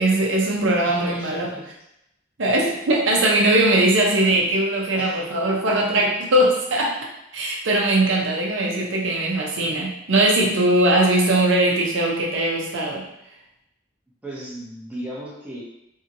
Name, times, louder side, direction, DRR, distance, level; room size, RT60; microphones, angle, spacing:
voice 1, 0.0-1.5 2.4-7.0 7.3-13.0, right 1 dB, 85° right, -2 dB, 0.6 m, -20 dB
voice 2, 0.8-1.6 4.9-5.3 5.6-5.8 14.2-15.6, right 1 dB, 10° right, -6 dB, 0.7 m, -35 dB
2.7 x 2.7 x 2.5 m, 0.83 s
head